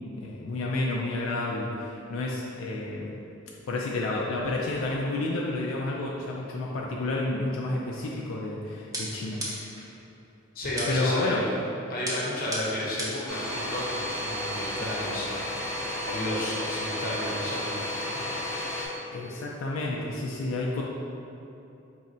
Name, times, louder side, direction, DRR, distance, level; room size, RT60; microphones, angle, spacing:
voice 1, 0.1-3.1 3.7-9.7 10.9-11.4 19.1-20.8, left 2 dB, 90° left, -2 dB, 0.4 m, -30 dB
sound 1, 8.9-9.9 10.8-11.2 12.1-13.3, right 1 dB, 15° right, 0.6 m, -35 dB
voice 2, 10.5-11.5 11.9-15.4 16.0-17.9, left 1 dB, 45° left, -5 dB, 0.7 m, -32 dB
Domestic sounds home sounds, 13.3-18.9, left 1 dB, 20° left, 1.0 m, -33 dB
4.2 x 3.1 x 2.6 m, 2.8 s
head